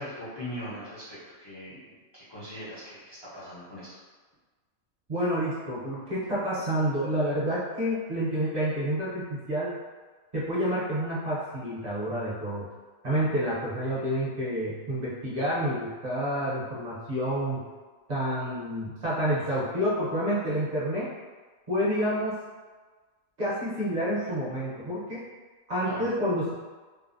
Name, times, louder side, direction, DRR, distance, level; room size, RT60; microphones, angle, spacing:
voice 1, 0.0-1.8 2.1-4.0 25.8-26.1, equal, 35° left, -10 dB, 0.4 m, -40 dB
voice 2, 5.1-9.7 10.3-12.7 13.0-17.6 18.1-21.1 21.7-22.4 23.4-25.2 25.7-26.5, equal, 40° right, -8 dB, 0.6 m, -29 dB
3.3 x 2.0 x 2.5 m, 1.4 s
omnidirectional pair, 1.4 m